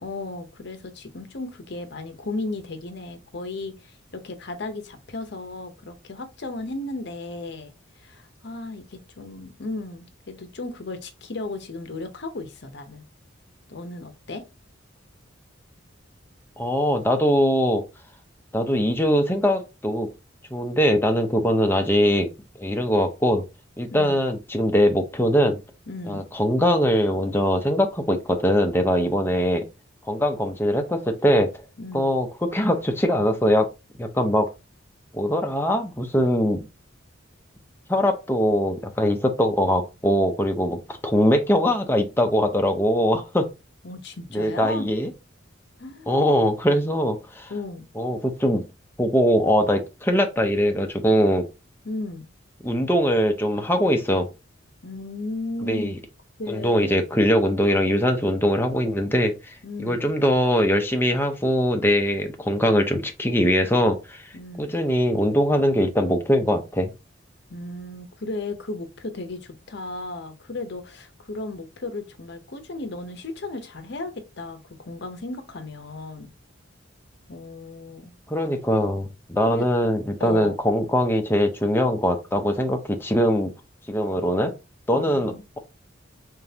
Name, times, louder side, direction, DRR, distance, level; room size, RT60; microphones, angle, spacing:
voice 1, 0.0-13.0 13.7-14.4 23.9-24.2 25.9-26.2 31.8-32.1 43.8-44.9 45.8-46.3 47.5-47.9 51.8-52.3 54.8-56.0 56.4-57.1 59.6-60.1 64.3-64.8 67.5-76.3 77.3-78.1 79.5-79.7 80.2-80.6 84.9-85.4, left 2 dB, 55° left, 0.8 m, -35 dB
voice 2, 16.6-17.8 18.5-20.1 20.5-22.3 22.6-23.5 23.8-25.6 26.1-29.7 30.1-31.5 31.9-33.7 34.0-34.5 35.1-36.7 37.9-43.5 44.3-45.1 46.1-47.5 48.0-48.6 49.0-51.5 52.6-54.3 55.7-55.9 56.5-64.2 64.6-66.9 78.3-83.5 83.9-84.5 84.9-85.6, equal, 10° left, 0.6 m, -22 dB
3.7 x 3.6 x 2.8 m
head